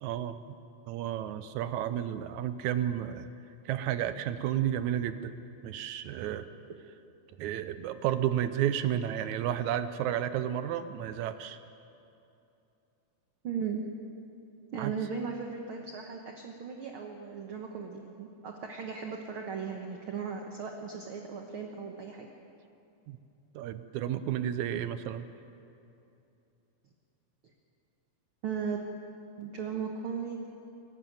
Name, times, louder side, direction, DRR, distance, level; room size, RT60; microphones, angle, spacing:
voice 1, 0.0-0.4 0.9-3.3 3.7-5.4 5.6-6.5 7.4-11.6 14.8-14.9 23.1-23.2 23.5-25.3, right 11 dB, 75° right, 11 dB, 2.0 m, -32 dB
voice 2, 13.4-13.9 14.7-22.3 28.4-28.8 29.4-30.5, right 6 dB, 55° right, 2 dB, 1.6 m, -37 dB
22.5 x 12.5 x 9.3 m, 2.7 s
omnidirectional pair, 3.5 m